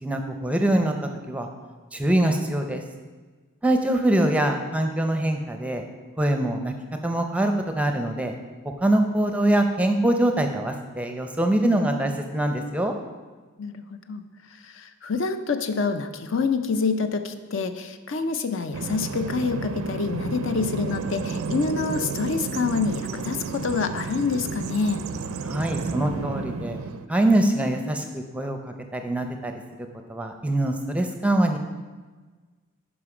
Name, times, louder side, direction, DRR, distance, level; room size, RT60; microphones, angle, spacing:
voice 1, 0.0-0.9 1.3-1.5 1.9-2.8 3.6-5.8 6.2-6.7 7.0-8.3 8.8-12.9 25.4-26.8 27.1-29.5 30.1-31.6, right 1 dB, 5° right, 5 dB, 0.5 m, -23 dB
voice 2, 13.6-14.2 14.6-25.0, left 4 dB, 60° left, 9 dB, 0.5 m, -27 dB
Bird vocalization bird call bird song, 18.7-27.1, right 4 dB, 75° right, 0.5 m, -32 dB
11.0 x 5.0 x 4.9 m, 1.4 s
head